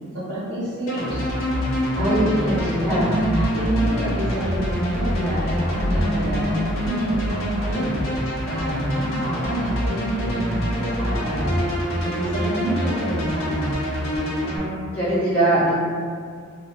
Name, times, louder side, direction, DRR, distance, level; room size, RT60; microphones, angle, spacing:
voice 1, 0.1-1.3 1.9-2.5 2.9-8.0 8.5-11.5 12.0-13.8, right 1 dB, 60° right, -11 dB, 1.1 m, -27 dB
sound 1, 0.9-14.6, equal, 70° left, 0.5 m, -25 dB
voice 2, 2.0-3.1 14.4-15.7, right 1 dB, 10° left, -11 dB, 0.4 m, -22 dB
2.5 x 2.0 x 2.4 m, 2.1 s
head